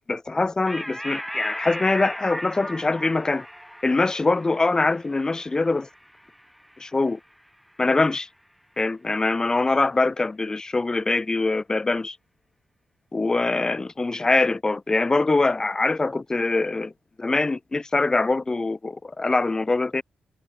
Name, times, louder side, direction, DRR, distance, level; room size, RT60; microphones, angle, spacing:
voice 1, 0.1-3.5 3.8-5.9 6.8-7.2 7.8-8.3 8.8-12.2 13.1-16.9 17.2-20.0, left 3 dB, 20° left, 0.5 m, -23 dB
sound 1, 0.7-7.5, equal, ahead, 3.1 m, -37 dB
cardioid pair, 100°, 3 cm